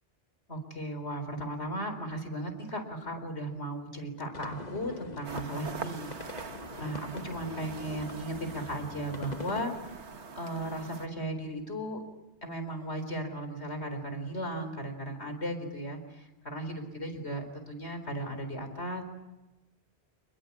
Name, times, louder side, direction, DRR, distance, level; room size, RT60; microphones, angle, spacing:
voice 1, 0.5-10.0 10.4-12.0 12.4-19.0, right 1 dB, 75° left, 7 dB, 4.6 m, -36 dB
sound 1, 4.3-9.6, left 3 dB, 40° left, 1.4 m, -44 dB
sound 2, 5.2-11.1, right 5 dB, 80° right, 1.7 m, -43 dB
29.0 x 21.5 x 8.6 m, 1.0 s
omnidirectional pair, 1.1 m